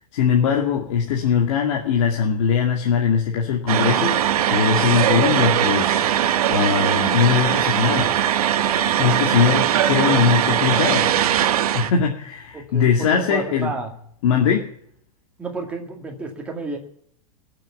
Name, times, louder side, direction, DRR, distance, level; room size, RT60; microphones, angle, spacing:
voice 1, 0.1-8.1 9.0-11.1 11.7-13.7 14.2-14.7, left 7 dB, 55° left, 0 dB, 2.4 m, -21 dB
sound 1, 3.7-11.9, right 10 dB, 80° right, 1.2 m, -20 dB
voice 2, 12.5-13.9 15.4-16.8, right 3 dB, 5° right, 1 dB, 2.2 m, -31 dB
21.5 x 7.7 x 7.3 m, 0.64 s
supercardioid pair, 175°, 19 cm